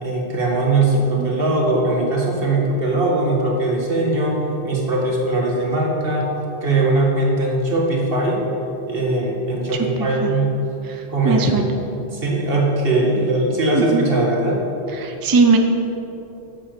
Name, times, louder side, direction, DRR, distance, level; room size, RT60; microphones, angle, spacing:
voice 1, 0.0-4.4 4.6-6.3 6.6-8.4 8.9-10.5 11.1-11.7 12.1-14.6, right 2 dB, 55° right, -1 dB, 1.9 m, -20 dB
voice 2, 10.0-10.4 10.9-11.7 13.7-14.1 14.9-15.6, right 4 dB, 25° right, 4 dB, 0.5 m, -20 dB
9.9 x 7.4 x 6.8 m, 2.9 s
omnidirectional pair, 1.1 m